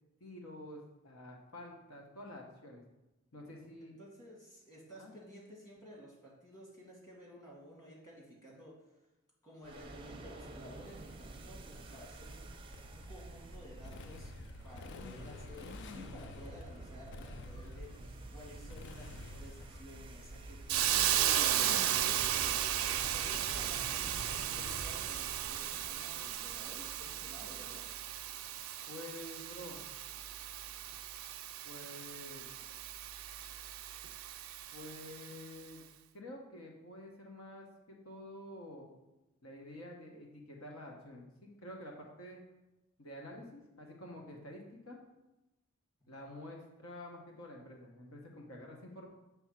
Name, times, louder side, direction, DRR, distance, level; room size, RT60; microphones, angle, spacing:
voice 1, 0.2-2.8 3.3-3.9 4.9-5.1 28.9-29.8 31.6-32.5 34.7-35.8 36.1-38.9 39.4-42.4 43.0-45.0 46.1-49.1, left 1 dB, 80° left, 0 dB, 1.1 m, -49 dB
voice 2, 4.0-8.9 9.4-27.9 46.0-46.2, equal, 20° left, -4 dB, 1.9 m, -54 dB
sound 1, 9.6-27.0, right 2 dB, 25° right, 0.5 m, -49 dB
Motorcycle, 12.7-25.6, left 4 dB, 55° left, 0.4 m, -50 dB
Hiss, 20.7-35.5, right 11 dB, 80° right, 0.5 m, -35 dB
7.1 x 3.5 x 5.8 m, 0.99 s
head